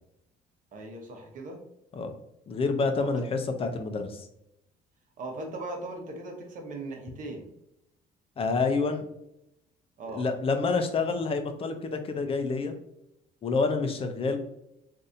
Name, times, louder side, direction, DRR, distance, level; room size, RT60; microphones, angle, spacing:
voice 1, 0.7-1.6 3.0-3.2 5.2-7.5 10.0-10.3, right 2 dB, 50° right, 2 dB, 1.0 m, -39 dB
voice 2, 2.5-4.3 8.4-9.0 10.1-12.7 13.4-14.4, left 4 dB, 35° left, 7 dB, 0.6 m, -28 dB
3.9 x 2.7 x 2.6 m, 0.81 s
cardioid pair, 110°, 17 cm